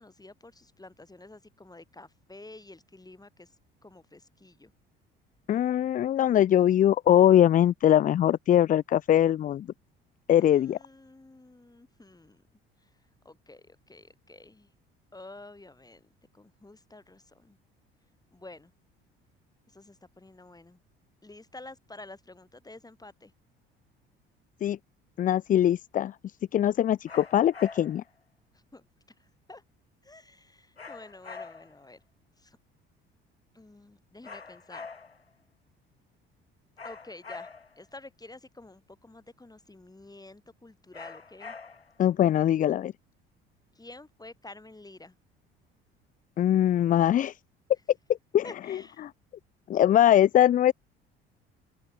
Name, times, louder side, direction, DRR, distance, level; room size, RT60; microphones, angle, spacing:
voice 1, 0.0-3.6 3.8-4.7 10.4-12.4 12.8-12.9 13.3-14.7 15.1-17.6 18.3-18.7 19.7-20.8 21.2-23.3 28.5-28.8 29.2-29.6 30.0-32.0 32.4-32.6 33.5-34.9 36.8-37.5 37.8-41.6 43.8-45.2 48.4-49.1, left 2 dB, 10° left, 7.0 m, -49 dB
voice 2, 5.5-9.7 10.3-10.8 24.6-24.8 25.2-26.1 26.5-28.0 42.0-42.9 46.4-47.4 48.3-48.4 49.0-49.1 49.7-50.7, left 11 dB, 30° left, 0.4 m, -22 dB
sound 1, 27.1-28.1 30.8-31.9 34.2-35.3 36.8-37.8 40.9-42.0, left 4 dB, 90° left, 3.5 m, -44 dB
open air
figure-of-eight pair, 55°, 30 cm